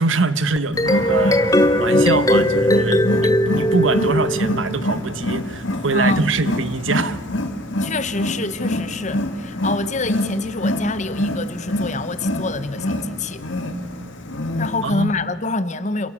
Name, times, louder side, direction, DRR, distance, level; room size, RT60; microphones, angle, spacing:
voice 1, 0.0-7.2 14.8-15.2, right 3 dB, 75° right, 1.2 m, -23 dB
sound 1, 0.6-4.9, left 1 dB, 15° left, 0.8 m, -19 dB
Wild animals, 0.7-15.0, left 1 dB, 70° left, 2.3 m, -26 dB
sound 2, 0.9-6.7 10.1-10.3, right 1 dB, 55° right, 5.8 m, -37 dB
voice 2, 5.9-6.3 7.8-13.4 14.6-16.1, left 3 dB, 35° left, 1.1 m, -26 dB
27.0 x 16.5 x 8.6 m
head